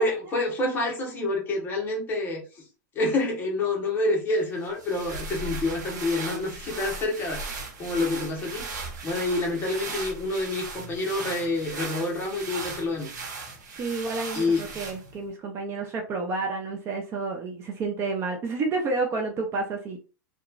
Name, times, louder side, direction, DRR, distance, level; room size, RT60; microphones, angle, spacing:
voice 1, 0.0-2.6 2.9-8.8 9.0-13.1 14.3-14.6, left 2 dB, 20° left, -1 dB, 1.0 m, -28 dB
sound 1, 4.6-15.3, right 3 dB, 90° right, 0.9 m, -37 dB
voice 2, 13.8-20.0, right 3 dB, 25° right, 2 dB, 0.5 m, -30 dB
2.9 x 2.3 x 2.4 m, 0.35 s
supercardioid pair, 140°, 10 cm